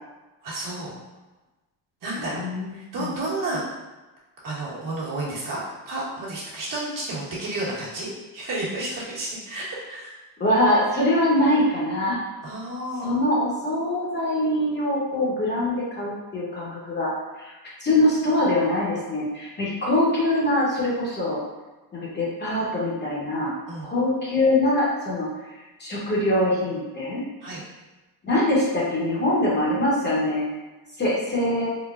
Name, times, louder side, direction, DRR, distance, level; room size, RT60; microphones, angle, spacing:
voice 1, 0.4-0.9 2.0-2.4 2.7-3.6 4.4-10.2 12.4-13.2 23.7-23.9 27.4-27.6, right 2 dB, 50° right, -7 dB, 1.2 m, -31 dB
voice 2, 2.2-3.1 10.4-12.2 13.0-17.1 17.4-17.5 17.8-21.4 21.9-23.5 23.8-25.3 25.8-27.2 28.2-30.4 31.0-31.7, left 1 dB, 25° left, -6 dB, 0.9 m, -23 dB
3.8 x 2.1 x 2.4 m, 1.1 s
cardioid pair, 105°, 40 cm